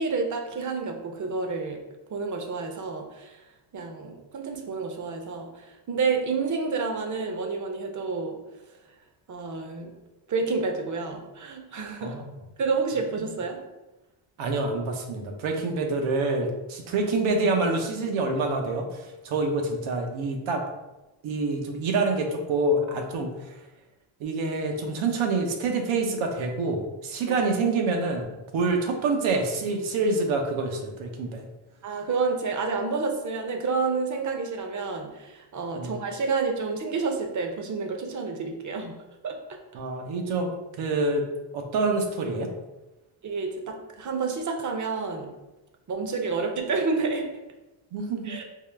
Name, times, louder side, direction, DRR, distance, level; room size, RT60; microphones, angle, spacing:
voice 1, 0.0-1.8 2.1-3.4 3.7-8.4 9.3-9.9 10.3-12.2 12.6-13.6 27.3-27.5 31.8-38.9 39.2-39.4 43.2-45.4 45.9-47.3 48.2-48.4, right 4 dB, 40° right, 3 dB, 0.7 m, -29 dB
voice 2, 14.4-20.6 21.2-23.3 24.2-31.5 35.7-35.9 39.7-41.2 41.5-42.5 47.9-48.3, right 3 dB, 85° right, 3 dB, 0.8 m, -27 dB
3.7 x 2.3 x 3.3 m, 1.0 s
cardioid pair, 90°, 47 cm